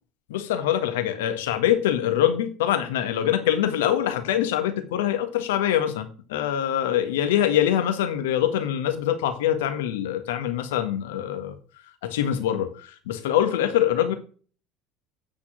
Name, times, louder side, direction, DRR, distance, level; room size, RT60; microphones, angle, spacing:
voice 1, 0.3-11.6 12.0-14.1, left 11 dB, 75° left, 8 dB, 1.6 m, -24 dB
9.1 x 6.0 x 6.1 m, 0.41 s
hypercardioid pair, 70°, 0 cm